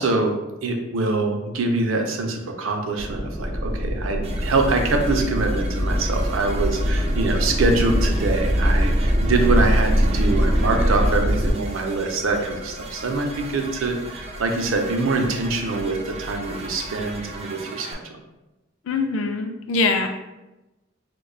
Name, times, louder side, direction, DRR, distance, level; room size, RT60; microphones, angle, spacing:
voice 1, 0.0-18.0, right 3 dB, 85° right, 4 dB, 0.5 m, -24 dB
sound 1, 3.0-11.5, equal, 55° right, 1.1 m, -22 dB
sound 2, 4.2-17.9, right 3 dB, 30° right, 0.4 m, -39 dB
sound 3, 7.2-17.4, equal, 50° left, 0.9 m, -42 dB
voice 2, 18.9-20.1, left 3 dB, 70° left, 5 dB, 0.3 m, -23 dB
4.8 x 2.2 x 2.3 m, 1.0 s
head